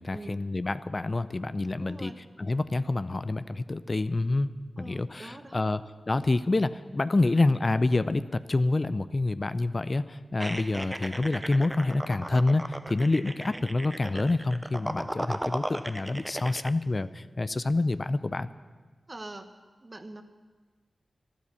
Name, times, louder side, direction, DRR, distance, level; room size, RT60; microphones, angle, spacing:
voice 1, 0.0-2.1 2.4-4.5 4.8-18.5, left 2 dB, 40° left, 13 dB, 0.5 m, -27 dB
voice 2, 1.8-2.2 4.8-5.7 19.1-19.5 19.8-20.2, right 2 dB, 35° right, 7 dB, 1.3 m, -43 dB
sound 1, 10.4-16.7, right 1 dB, 10° right, 0.5 m, -36 dB
12.5 x 12.0 x 7.0 m, 1.4 s
cardioid pair, 50°, 0 cm